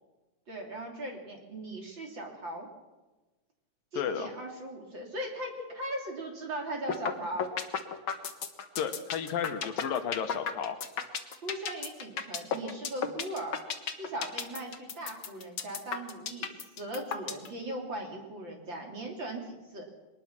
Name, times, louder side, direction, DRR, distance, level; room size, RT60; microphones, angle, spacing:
voice 1, 0.5-2.7 3.9-7.5 11.4-13.6 14.0-19.9, right 1 dB, 35° right, 1 dB, 3.6 m, -39 dB
voice 2, 4.0-4.3 8.8-10.8, left 8 dB, 80° left, 8 dB, 3.0 m, -33 dB
sound 1, 6.9-7.1 7.4-17.5, left 7 dB, 50° left, 1.6 m, -33 dB
24.0 x 19.5 x 6.0 m, 1.1 s
omnidirectional pair, 4.0 m